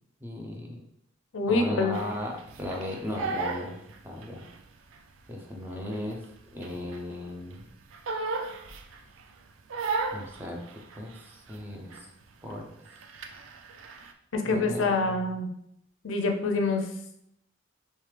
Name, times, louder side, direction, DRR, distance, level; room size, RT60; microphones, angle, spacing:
voice 1, 0.2-0.8 1.5-4.5 5.3-6.2 6.5-7.7 10.1-10.6 10.9-11.9 12.4-12.7 14.4-15.2, left 1 dB, 10° right, 0 dB, 0.6 m, -36 dB
voice 2, 1.3-1.9 14.3-15.5 16.0-16.9, left 3 dB, 80° left, 4 dB, 0.5 m, -26 dB
Crying sobbing, 1.9-4.6 4.9-7.2 7.5-9.2 9.7-11.6 11.9-12.2 12.5-14.1, right 4 dB, 80° right, 0.4 m, -35 dB
3.3 x 3.2 x 3.3 m, 0.74 s
head